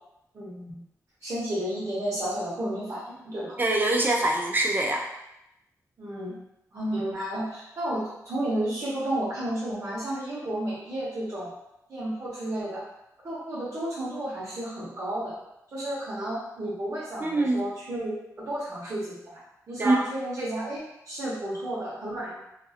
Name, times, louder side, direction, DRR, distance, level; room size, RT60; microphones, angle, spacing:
voice 1, 0.3-0.8 1.2-3.6 6.0-6.4 6.7-11.5 11.9-12.8 13.2-15.3 15.7-19.4 19.7-22.4, right 1 dB, 60° right, -9 dB, 1.0 m, -32 dB
voice 2, 3.6-5.0 17.2-17.6 19.8-20.0, right 2 dB, 30° right, 1 dB, 0.4 m, -24 dB
2.7 x 2.6 x 2.4 m, 0.84 s
wide cardioid pair, 100°, 6 cm